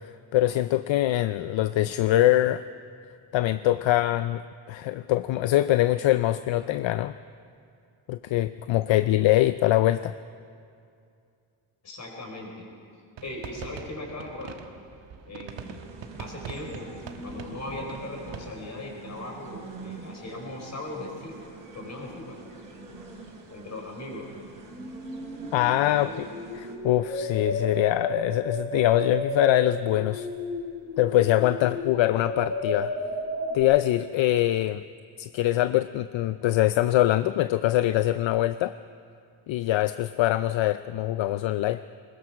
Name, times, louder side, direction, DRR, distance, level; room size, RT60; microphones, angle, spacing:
voice 1, 0.3-2.6 3.3-4.4 4.7-7.1 8.1-10.2 25.5-26.3 26.5-30.3 31.0-32.9 33.5-34.8 35.2-38.7 39.5-41.8, left 14 dB, 70° left, 13 dB, 0.6 m, -23 dB
voice 2, 11.8-12.7 13.2-14.6 15.2-15.8 16.2-16.9 17.2-22.4 23.5-24.3 25.5-26.1, left 2 dB, 35° left, 1 dB, 4.7 m, -39 dB
sound 1, 13.2-18.7, right 7 dB, 65° right, 1.4 m, -43 dB
sound 2, 15.5-26.8, right 3 dB, 40° right, 3.9 m, -45 dB
sound 3, 17.0-17.8 24.7-33.6, left 1 dB, 10° left, 6.3 m, -33 dB
21.0 x 20.5 x 6.0 m, 2.4 s
cardioid pair, 140°, 48 cm